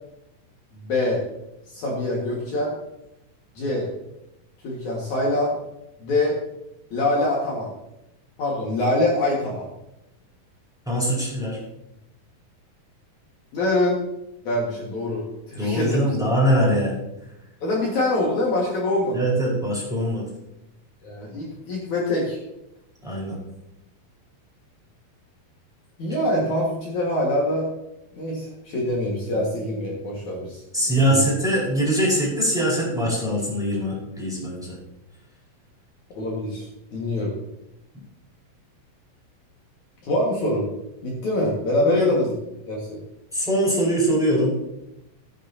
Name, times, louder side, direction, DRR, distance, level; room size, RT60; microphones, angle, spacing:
voice 1, 0.7-1.2 1.7-2.7 3.5-3.9 4.6-5.5 6.0-6.4 6.9-7.7 8.4-9.7 13.5-14.0 14.4-16.2 17.6-19.2 21.0-22.4 26.0-27.7 28.1-31.2 36.2-36.7 36.9-37.3 40.0-40.7 41.0-42.3 42.7-43.0, left 1 dB, 60° left, -3 dB, 3.0 m, -24 dB
voice 2, 10.9-11.6 15.6-17.0 19.1-20.2 23.0-23.4 30.7-34.7 41.8-42.1 43.3-44.5, equal, ahead, -5 dB, 4.4 m, -22 dB
16.5 x 10.5 x 2.8 m, 0.87 s
omnidirectional pair, 4.1 m